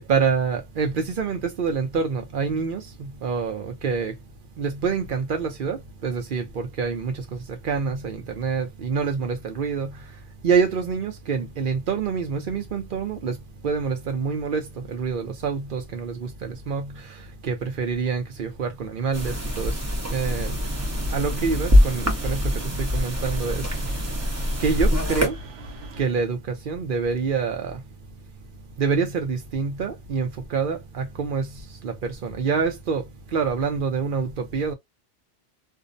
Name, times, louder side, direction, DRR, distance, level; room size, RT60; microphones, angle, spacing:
voice 1, 0.0-4.2 4.6-19.8 20.1-20.6 21.1-23.9 24.6-25.4 26.0-27.8 28.8-34.7, right 5 dB, 55° right, 0.7 m, -27 dB
sound 1, 19.1-25.3, left 1 dB, 20° right, 0.4 m, -23 dB
sound 2, 20.6-26.0, equal, 80° right, 1.0 m, -41 dB
2.5 x 2.0 x 2.4 m
omnidirectional pair, 1.2 m